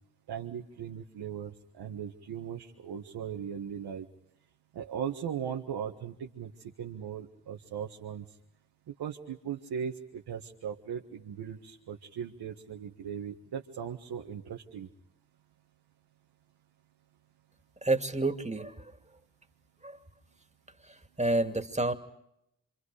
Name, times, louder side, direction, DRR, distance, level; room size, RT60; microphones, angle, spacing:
voice 1, 0.3-4.1 4.7-8.2 8.9-14.9, right 8 dB, 80° right, 1 dB, 1.6 m, -38 dB
voice 2, 17.8-18.7 19.8-20.0 20.9-21.9, right 2 dB, 20° right, 6 dB, 2.5 m, -29 dB
27.0 x 26.0 x 5.0 m, 0.80 s
supercardioid pair, 50°, 37 cm